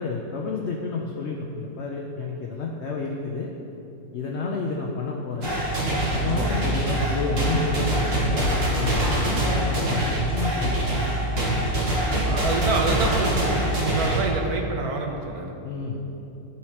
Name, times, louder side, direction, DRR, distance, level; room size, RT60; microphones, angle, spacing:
voice 1, 0.0-3.5 4.1-5.6 6.1-10.8 12.0-12.2 15.6-16.0, left 4 dB, 70° left, -1 dB, 0.6 m, -30 dB
sound 1, 5.4-14.2, right 1 dB, 55° right, 1.5 m, -24 dB
voice 2, 6.3-6.6 12.2-15.5, right 3 dB, 70° right, 2 dB, 1.1 m, -27 dB
11.0 x 4.2 x 2.8 m, 2.9 s
omnidirectional pair, 1.7 m